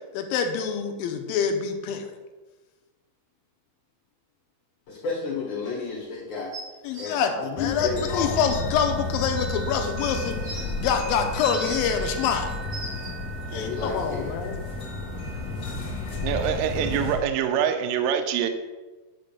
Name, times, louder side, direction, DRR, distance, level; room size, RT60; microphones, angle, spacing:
voice 1, 0.1-2.1 6.8-12.5 13.5-14.6, left 7 dB, 80° left, 6 dB, 2.4 m, -26 dB
voice 2, 4.9-6.5 7.0-8.5 13.5-14.4, left 4 dB, 60° left, -6 dB, 2.8 m, -31 dB
sound 1, 6.5-7.1 8.1-8.2 8.5-8.6 9.2-9.3 10.1-10.7 11.3-12.0 12.5-13.1 14.1-14.2, right 2 dB, 45° right, 3.9 m, -39 dB
sound 2, 7.6-17.2, left 2 dB, 40° left, 1.5 m, -32 dB
voice 3, 16.2-18.5, right 8 dB, 80° right, 7 dB, 2.2 m, -25 dB
10.5 x 3.7 x 6.9 m, 1.2 s
omnidirectional pair, 4.3 m